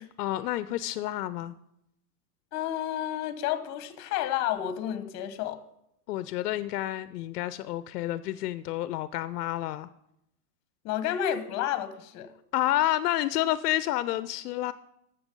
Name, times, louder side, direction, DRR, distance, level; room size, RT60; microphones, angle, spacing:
voice 1, 0.2-1.5 6.1-9.9 12.5-14.7, left 14 dB, 75° left, 15 dB, 0.6 m, -29 dB
voice 2, 2.5-5.6 10.8-12.3, left 11 dB, 35° left, 11 dB, 1.1 m, -30 dB
13.5 x 7.1 x 5.3 m, 0.80 s
supercardioid pair, 140°, 47 cm